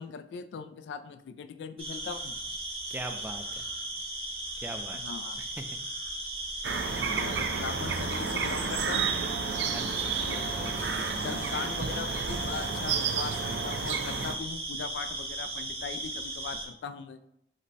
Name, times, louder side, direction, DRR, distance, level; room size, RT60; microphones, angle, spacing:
voice 1, 0.0-2.4 4.9-5.4 7.1-9.1 10.3-10.9 11.2-17.2, left 6 dB, 80° left, 11 dB, 0.3 m, -40 dB
sound 1, 1.8-16.7, right 1 dB, 35° right, 0.8 m, -37 dB
voice 2, 2.9-3.7 4.6-5.0 5.6-5.8 7.2-7.5 9.7-11.4, right 2 dB, 10° right, 5 dB, 0.3 m, -42 dB
sound 2, 6.6-14.4, right 5 dB, 80° right, 0.4 m, -32 dB
sound 3, 9.3-9.8 10.3-10.8 11.3-11.8 12.3-12.8 13.3-13.8, right 4 dB, 60° right, 1.4 m, -46 dB
5.2 x 2.1 x 4.0 m, 0.77 s
head